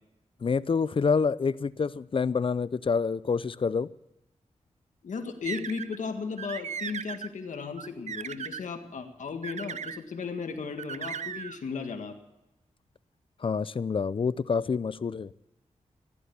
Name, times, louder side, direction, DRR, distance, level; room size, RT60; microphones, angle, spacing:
voice 1, 0.4-3.9 13.4-15.3, left 5 dB, 45° left, 18 dB, 0.5 m, -27 dB
voice 2, 5.0-12.2, left 5 dB, 80° left, 5 dB, 1.8 m, -35 dB
sound 1, 5.4-6.0 6.4-7.3 7.8-8.6 9.4-10.0 10.8-11.6, right 7 dB, 65° right, 0.6 m, -37 dB
15.5 x 12.0 x 7.0 m, 0.94 s
wide cardioid pair, 80°, 13 cm